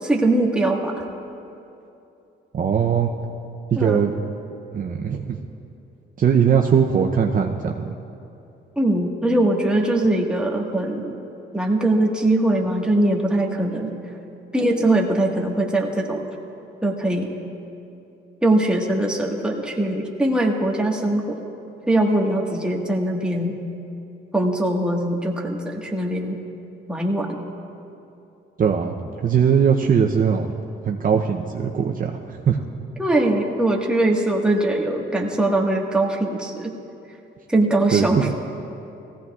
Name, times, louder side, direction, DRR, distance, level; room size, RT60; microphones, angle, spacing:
voice 1, 0.0-1.0 3.8-4.0 8.8-11.1 11.5-13.9 14.5-16.3 16.8-17.3 18.4-21.4 21.9-23.6 24.3-26.4 26.9-27.4 33.0-36.7 37.5-38.3, right 1 dB, 5° right, -1 dB, 1.5 m, -21 dB
voice 2, 2.5-3.1 3.7-4.1 4.7-5.4 6.2-8.0 28.6-30.5 30.8-32.1 32.5-32.6 37.9-38.3, right 7 dB, 45° right, 1 dB, 0.7 m, -20 dB
18.5 x 15.5 x 2.4 m, 2.8 s
cardioid pair, 90°, 20 cm